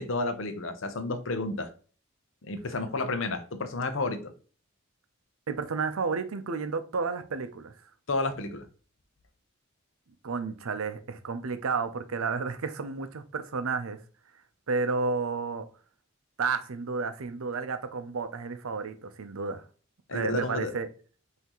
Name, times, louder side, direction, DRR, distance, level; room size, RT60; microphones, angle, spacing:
voice 1, 0.0-1.7 2.4-4.3 8.1-8.7 20.1-20.7, left 2 dB, 70° left, 0.7 m, -31 dB
voice 2, 5.5-7.7 10.2-14.0 14.7-15.7 16.4-19.6 20.1-20.9, right 4 dB, 85° right, 0.6 m, -31 dB
5.6 x 2.8 x 3.0 m
head